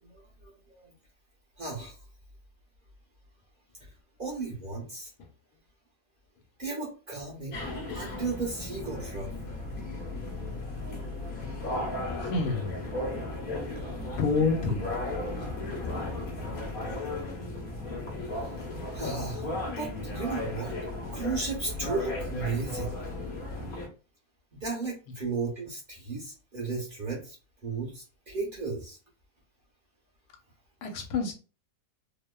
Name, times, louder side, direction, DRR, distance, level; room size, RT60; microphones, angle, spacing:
voice 1, 0.0-0.9 1.6-1.9 4.2-5.1 6.6-7.6 7.9-9.3 18.9-20.7 21.1-23.0 24.6-27.4 27.6-29.0, right 4 dB, 40° right, 0.9 m, -35 dB
sound 1, 7.5-23.9, left 2 dB, 45° left, 0.8 m, -35 dB
voice 2, 12.2-12.8 14.2-14.9 30.8-31.3, left 4 dB, 80° left, 1.2 m, -27 dB
2.8 x 2.1 x 2.2 m
omnidirectional pair, 1.6 m